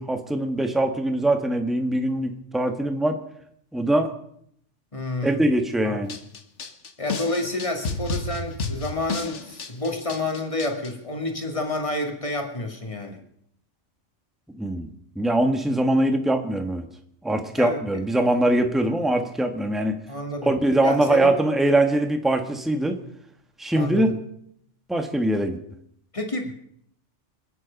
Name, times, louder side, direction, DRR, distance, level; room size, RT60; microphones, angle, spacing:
voice 1, 0.0-3.2 3.7-4.1 5.2-6.1 14.5-14.9 15.1-16.8 17.2-19.9 20.4-22.9 23.6-24.1 24.9-25.6, right 1 dB, ahead, 5 dB, 1.4 m, -22 dB
voice 2, 4.9-5.5 5.8-6.0 7.0-13.2 17.5-17.8 20.1-20.5 20.8-21.3 23.7-24.1 26.1-26.5, left 2 dB, 25° left, 3 dB, 2.3 m, -29 dB
sound 1, 6.1-10.9, left 3 dB, 75° left, 1.6 m, -31 dB
26.5 x 9.8 x 5.3 m, 0.70 s
omnidirectional pair, 1.2 m